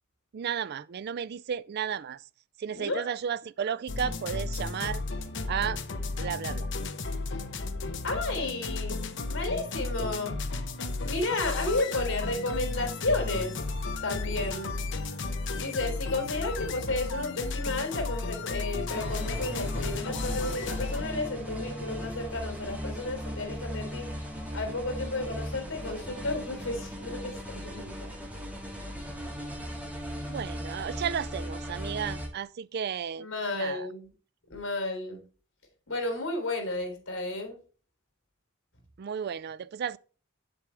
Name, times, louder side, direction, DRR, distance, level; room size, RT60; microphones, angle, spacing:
voice 1, 0.3-2.3 2.6-5.0 5.5-5.8 6.2-6.7 30.3-33.3 33.5-33.9 39.0-40.0, right 8 dB, 50° right, 0.3 m, -33 dB
voice 2, 2.7-3.1 8.0-10.4 11.0-13.6 14.0-14.7 15.6-24.1 24.5-28.1 33.2-34.1 34.5-35.2 35.9-37.6, left 2 dB, 80° left, 3.8 m, -32 dB
sound 1, 3.9-21.0, left 3 dB, 60° left, 0.8 m, -33 dB
sound 2, 18.9-32.3, equal, 5° right, 1.8 m, -37 dB
8.3 x 7.8 x 3.4 m
head